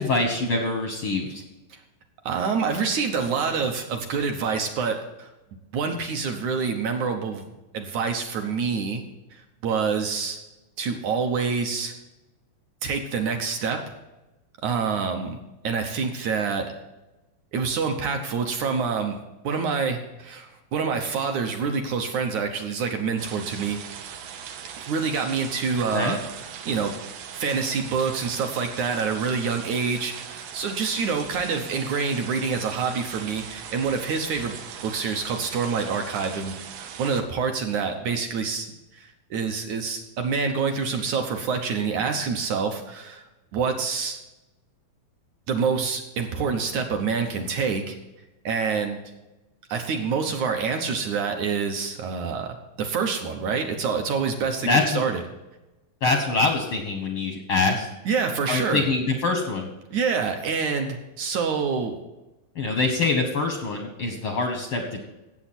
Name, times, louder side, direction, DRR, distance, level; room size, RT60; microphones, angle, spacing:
voice 1, 0.0-1.4 25.9-26.2 54.7-55.0 56.0-57.9 58.5-59.7 62.5-65.0, left 3 dB, 75° left, 3 dB, 1.2 m, -24 dB
voice 2, 2.3-5.3 5.7-7.5 7.7-9.0 9.3-10.4 10.8-11.9 12.8-13.9 14.6-15.4 15.6-16.7 17.5-19.2 19.4-23.8 24.8-26.2 26.7-26.9 27.3-38.7 38.9-43.2 43.5-44.2 45.5-48.0 48.5-49.0 49.7-55.2 58.1-58.8 59.9-62.0, right 5 dB, 70° right, 5 dB, 1.9 m, -27 dB
sound 1, 23.2-37.2, right 8 dB, 85° right, 3.1 m, -40 dB
16.5 x 7.8 x 4.3 m, 1.0 s
omnidirectional pair, 4.5 m